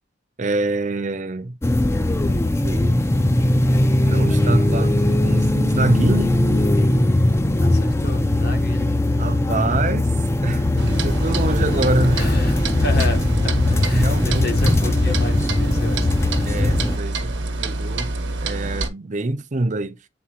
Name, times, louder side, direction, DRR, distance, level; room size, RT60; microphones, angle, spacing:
voice 1, 0.4-1.6 2.6-3.0 4.0-6.4 9.2-10.1 10.4-10.7 11.0-12.2 13.9-14.7 16.5-17.3 17.6-18.1 18.4-20.0, right 2 dB, 40° right, 0.6 m, -24 dB
sound 1, 1.6-17.0, left 1 dB, 15° left, 0.4 m, -19 dB
voice 2, 7.6-8.9 12.1-16.1 16.3-16.5, left 1 dB, 60° left, 1.5 m, -31 dB
Clock, 10.8-18.9, right 2 dB, 80° right, 1.1 m, -27 dB
8.7 x 4.1 x 2.9 m
head